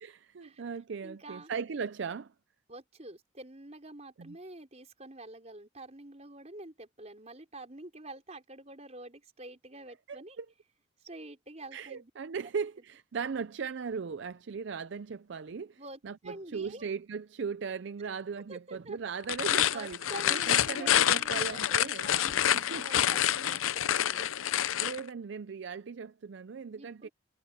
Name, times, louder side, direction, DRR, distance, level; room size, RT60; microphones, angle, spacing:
voice 1, 0.0-2.3 4.2-4.3 10.1-10.5 11.7-20.0 20.3-22.1 22.5-22.8 24.2-24.4 24.8-27.1, right 5 dB, 60° right, 0.4 m, -38 dB
voice 2, 1.0-1.5 2.7-10.4 11.0-12.1 15.8-16.9 18.5-19.0 19.7-24.3 26.7-27.1, right 2 dB, 35° right, 4.6 m, -47 dB
sound 1, 19.2-25.0, left 11 dB, 80° left, 0.5 m, -27 dB
head